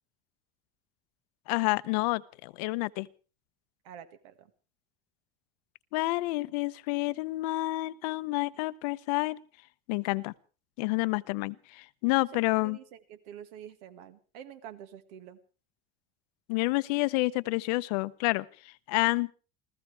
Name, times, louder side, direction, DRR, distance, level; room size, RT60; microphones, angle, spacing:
voice 1, 1.5-3.1 5.9-9.4 9.9-10.3 10.8-12.8 16.5-19.3, left 22 dB, 80° left, 0.7 m, -29 dB
voice 2, 3.8-4.5 12.0-12.3 12.6-15.4, right 9 dB, 85° right, 1.9 m, -48 dB
29.0 x 15.0 x 3.3 m
cardioid pair, 180°, 20 cm